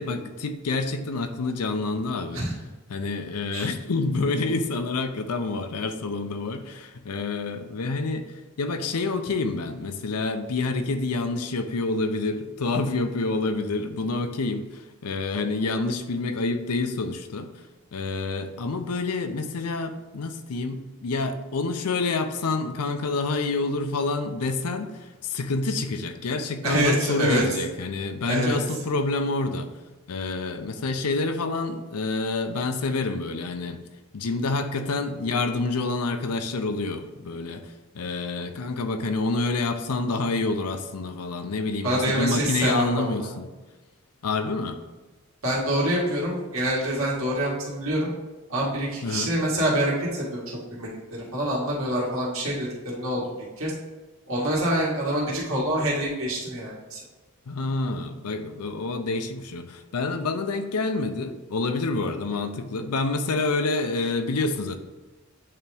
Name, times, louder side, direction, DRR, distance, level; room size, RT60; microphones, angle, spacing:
voice 1, 0.0-2.5 2.9-17.5 17.9-29.7 30.1-33.8 34.1-37.6 37.9-43.5 44.2-44.8 49.0-49.3 57.5-64.8, left 3 dB, 85° left, 8 dB, 0.6 m, -28 dB
voice 2, 26.6-27.4 28.3-28.6 41.8-43.0 45.4-48.1 48.5-53.2 53.6-53.7 54.3-57.0, right 1 dB, 65° right, -5 dB, 1.9 m, -26 dB
8.6 x 3.5 x 3.4 m, 1.2 s
head